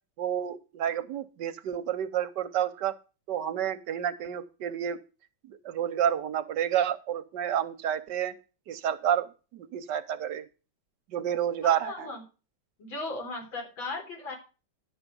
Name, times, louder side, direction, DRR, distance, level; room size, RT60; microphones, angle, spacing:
voice 1, 0.2-2.9 3.3-5.0 5.5-8.3 8.7-10.5 11.1-12.1, right 10 dB, 70° right, 12 dB, 1.3 m, -29 dB
voice 2, 11.6-12.2 12.8-14.4, left 3 dB, 80° left, 1 dB, 4.4 m, -37 dB
11.0 x 7.1 x 5.2 m, 0.33 s
omnidirectional pair, 2.1 m